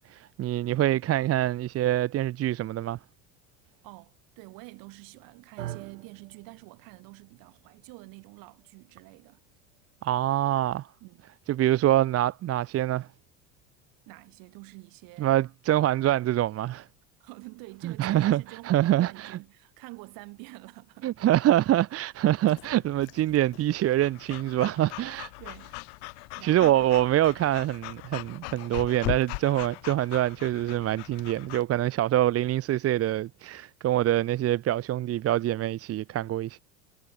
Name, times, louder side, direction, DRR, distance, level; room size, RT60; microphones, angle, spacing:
voice 1, 0.1-3.0 10.0-10.9 11.5-13.1 15.2-16.9 17.8-19.3 21.0-25.3 26.4-36.6, right 13 dB, 40° right, 0.8 m, -25 dB
voice 2, 3.8-9.4 11.0-11.3 14.1-15.4 17.2-21.1 25.1-25.8 26.1-26.9, right 26 dB, 65° right, 5.4 m, -47 dB
sound 1, 5.6-13.8, right 13 dB, 85° right, 4.5 m, -48 dB
Breathing / Dog, 22.5-31.6, left 38 dB, 70° left, 1.7 m, -40 dB
hypercardioid pair, 80°, 37 cm